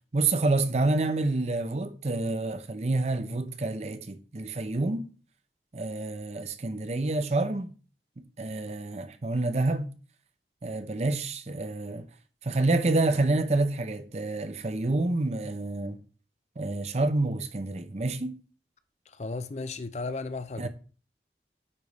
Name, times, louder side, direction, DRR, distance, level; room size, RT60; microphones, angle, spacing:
voice 1, 0.1-5.1 5.7-7.7 8.2-9.9 10.6-12.1 12.4-16.0 16.6-18.4 20.6-20.7, right 2 dB, 40° right, 0.5 m, -28 dB
voice 2, 19.1-20.7, left 3 dB, 40° left, 0.4 m, -35 dB
9.6 x 3.5 x 4.0 m
head